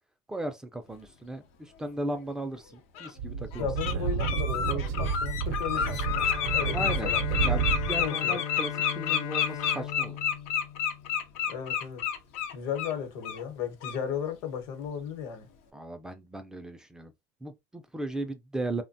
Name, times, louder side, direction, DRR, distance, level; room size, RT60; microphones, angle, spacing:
voice 1, 0.3-3.7 6.7-7.1 7.4-10.2 15.7-17.1 17.4-18.8, right 1 dB, 10° right, 0.3 m, -36 dB
Bird, 2.1-2.2 2.9-3.1 3.5-3.9 4.2-12.9 13.2-13.4 13.8-14.0, left 8 dB, 90° left, 0.6 m, -30 dB
Speech / Wind, 3.2-8.1, right 7 dB, 65° right, 0.5 m, -30 dB
voice 2, 3.6-7.5 8.0-8.4 11.5-12.0 12.5-15.5, left 8 dB, 65° left, 0.9 m, -35 dB
Bowed string instrument, 5.8-11.5, left 9 dB, 50° left, 0.5 m, -38 dB
3.1 x 2.1 x 2.6 m
cardioid pair, 140°, 7 cm